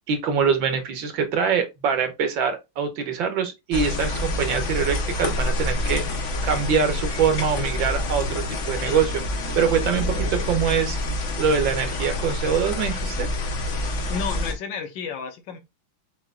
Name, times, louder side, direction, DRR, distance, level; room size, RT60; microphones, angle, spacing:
voice 1, 0.1-11.0 11.4-13.3, right 6 dB, 70° right, 1.7 m, -24 dB
sound 1, 3.7-14.5, left 1 dB, 50° left, 1.0 m, -27 dB
voice 2, 14.1-15.6, left 5 dB, 70° left, 1.5 m, -31 dB
7.7 x 2.9 x 2.3 m
omnidirectional pair, 2.3 m